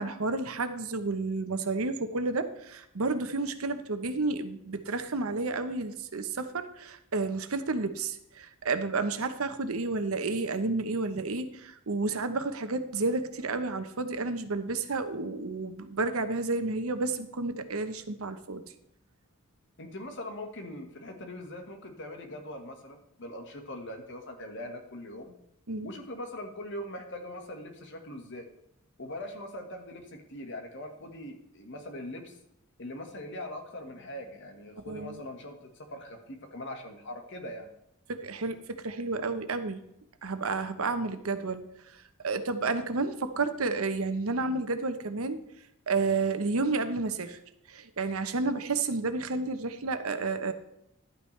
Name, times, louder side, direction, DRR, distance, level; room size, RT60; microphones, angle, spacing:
voice 1, 0.0-18.6 25.7-25.9 34.9-35.2 38.1-39.8 40.2-41.6 41.9-45.4 45.9-47.4 47.7-50.5, right 3 dB, 80° right, 10 dB, 0.9 m, -31 dB
voice 2, 19.8-25.3 25.8-28.5 29.0-32.4 32.8-37.7, left 1 dB, 60° left, 5 dB, 1.5 m, -41 dB
11.5 x 8.8 x 3.3 m, 0.82 s
head